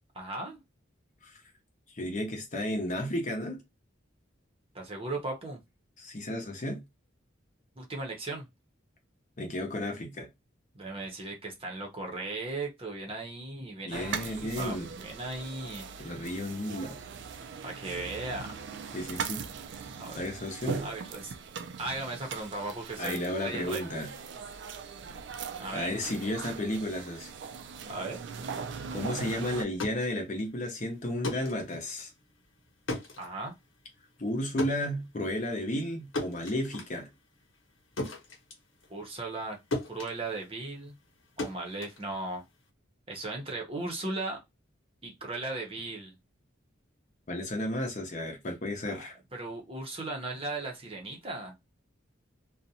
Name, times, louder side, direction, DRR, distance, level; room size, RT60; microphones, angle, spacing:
voice 1, 0.2-0.6 4.7-5.6 7.8-8.5 10.7-15.9 17.6-18.6 20.0-20.2 20.8-21.3 21.8-23.8 25.6-25.9 27.9-28.2 32.9-33.5 38.9-39.6 39.9-41.0 41.4-42.4 43.1-44.4 45.0-46.1 48.9-51.5, right 2 dB, 30° right, 0.7 m, -37 dB
voice 2, 1.9-3.6 6.0-6.8 9.4-10.3 13.8-14.9 16.0-17.0 18.9-19.4 20.1-20.9 23.0-24.1 25.7-27.3 28.9-32.1 34.2-37.1 47.3-49.2, left 1 dB, 40° left, 0.7 m, -33 dB
sound 1, 13.9-29.6, right 6 dB, 60° right, 0.3 m, -40 dB
sound 2, 29.7-39.5 39.7-42.7, left 2 dB, 75° left, 1.0 m, -39 dB
2.5 x 2.1 x 2.7 m
head